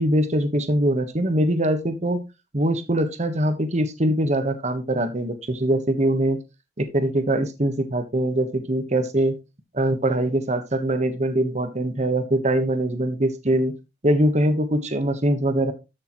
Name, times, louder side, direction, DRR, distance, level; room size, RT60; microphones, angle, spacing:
voice 1, 0.0-2.2 2.5-6.4 6.8-9.3 9.7-13.7 14.0-15.7, right 1 dB, 40° right, 8 dB, 1.3 m, -22 dB
13.0 x 6.6 x 3.1 m, 0.25 s
head